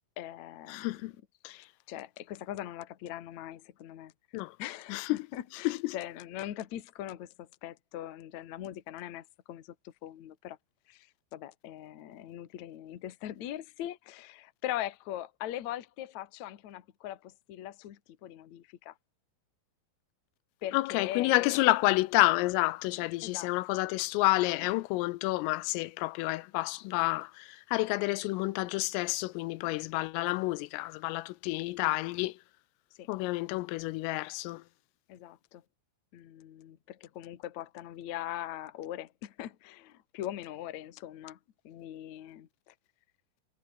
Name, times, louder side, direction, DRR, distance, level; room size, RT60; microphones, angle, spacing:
voice 1, 0.2-1.1 1.4-4.1 4.6-10.6 10.9-18.9 20.6-21.7 23.2-23.5 32.9-33.1 35.1-35.6 36.1-41.4 41.6-42.7, left 12 dB, 65° left, 1.8 m, -41 dB
voice 2, 0.7-1.1 1.4-1.6 4.3-4.6 4.9-5.3 5.6-6.0 20.7-32.3 33.1-34.6, left 20 dB, 85° left, 3.3 m, -29 dB
omnidirectional pair, 6.0 m